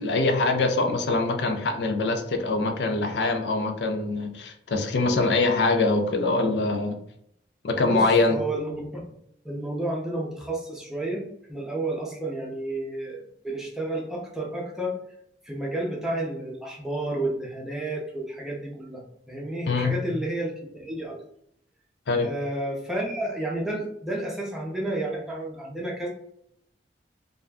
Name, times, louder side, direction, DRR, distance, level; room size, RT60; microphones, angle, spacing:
voice 1, 0.0-7.0 7.6-8.4 19.7-20.0 22.1-22.3, left 3 dB, 70° left, 5 dB, 0.4 m, -24 dB
voice 2, 7.9-9.0 9.4-11.2 11.5-15.0 15.4-19.0 19.3-21.2 22.2-26.1, right 1 dB, 5° right, -2 dB, 0.5 m, -31 dB
2.4 x 2.2 x 3.3 m, 0.72 s
head